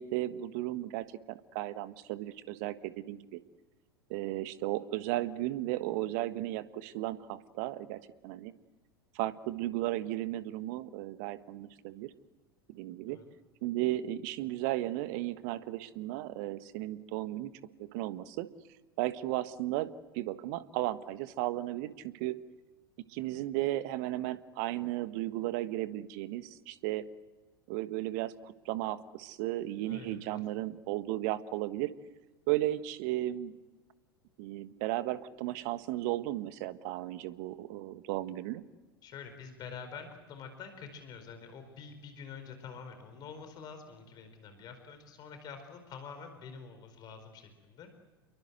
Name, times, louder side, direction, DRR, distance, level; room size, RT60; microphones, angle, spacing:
voice 1, 0.0-3.4 4.1-8.5 9.1-12.1 12.7-13.2 13.6-17.5 17.8-18.5 19.0-22.4 23.1-27.0 27.7-31.9 32.5-33.5 34.4-38.6, right 15 dB, 50° right, 13 dB, 1.5 m, -35 dB
voice 2, 29.8-30.4 39.0-48.0, left 6 dB, 35° left, 8 dB, 4.6 m, -47 dB
29.0 x 23.0 x 8.0 m, 1.2 s
figure-of-eight pair, 85°, 12 cm